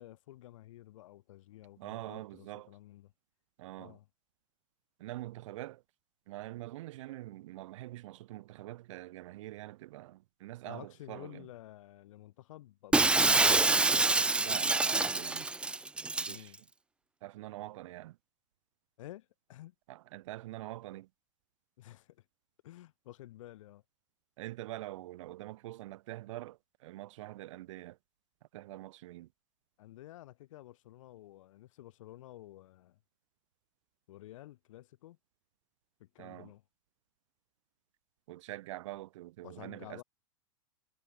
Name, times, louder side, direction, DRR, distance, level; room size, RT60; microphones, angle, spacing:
voice 1, 0.0-3.1 3.8-4.1 10.6-13.9 16.3-16.6 19.0-19.7 21.8-22.2 22.6-23.8 29.8-33.0 34.1-35.2 36.0-36.6 39.4-40.0, left 15 dB, 65° left, 7.7 m, -51 dB
voice 2, 1.8-2.8 3.6-4.0 5.0-5.8 6.3-11.5 14.4-15.5 16.1-16.5 17.2-18.2 19.9-21.1 24.4-28.0 28.5-29.3 36.2-36.5 38.3-40.0, right 16 dB, 60° right, 4.0 m, -45 dB
Shatter, 12.9-16.4, right 3 dB, 5° right, 1.0 m, -26 dB
supercardioid pair, 155°, 18 cm